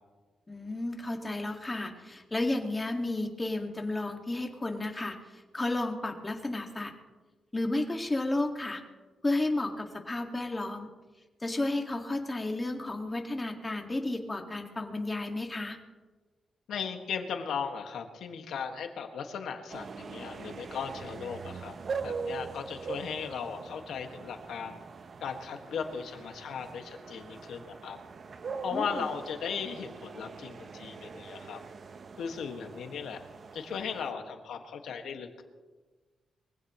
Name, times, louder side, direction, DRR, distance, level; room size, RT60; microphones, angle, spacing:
voice 1, 0.5-6.9 7.5-8.8 9.2-10.9 11.4-15.8 28.7-29.0, left 2 dB, 20° left, 3 dB, 2.0 m, -32 dB
voice 2, 16.7-21.7 22.0-24.8 25.2-28.0 28.6-31.6 32.2-33.2 33.5-35.4, left 6 dB, 80° left, 5 dB, 1.7 m, -37 dB
sound 1, 19.7-34.1, right 5 dB, 45° right, 0.8 m, -42 dB
23.5 x 16.0 x 3.1 m, 1.3 s
cardioid pair, 100°, 0 cm